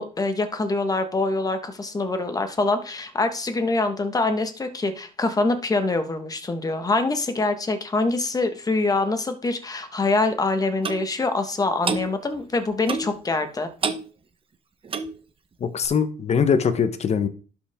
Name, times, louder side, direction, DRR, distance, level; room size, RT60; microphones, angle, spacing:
voice 1, 0.0-13.7, left 3 dB, 20° left, 1.5 m, -24 dB
Clock, 10.8-11.0 11.8-12.1 12.9-13.2 13.8-14.1 14.8-15.2 15.8-15.9, right 5 dB, 30° right, 1.1 m, -27 dB
voice 2, 15.6-17.3, left 6 dB, 40° left, 1.1 m, -22 dB
11.5 x 5.2 x 3.7 m
cardioid pair, 110°, 17 cm